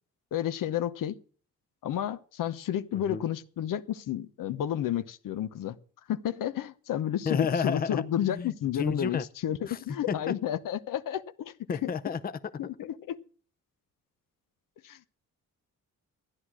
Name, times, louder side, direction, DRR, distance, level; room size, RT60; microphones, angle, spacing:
voice 1, 0.3-1.2 1.8-5.8 6.1-11.9 12.6-13.2 14.8-15.0, left 11 dB, 85° left, 0.9 m, -31 dB
voice 2, 2.9-3.2 7.2-9.3 9.7-9.8 10.1-10.3 11.7-12.3, left 6 dB, 30° left, 0.6 m, -31 dB
14.0 x 10.0 x 6.1 m
cardioid pair, 125°, 32 cm